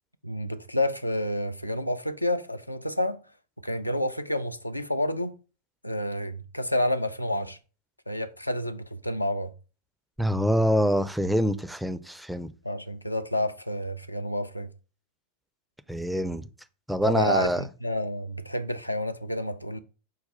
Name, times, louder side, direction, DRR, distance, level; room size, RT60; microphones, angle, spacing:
voice 1, 0.2-3.2 3.6-5.3 5.8-7.6 8.1-9.5 12.6-14.7 17.0-19.8, left 1 dB, 85° left, 0.3 m, -29 dB
voice 2, 10.2-12.5 15.9-16.4 16.9-17.6, equal, ahead, 0.4 m, -25 dB
5.4 x 2.3 x 4.0 m
figure-of-eight pair, 90°, 0 cm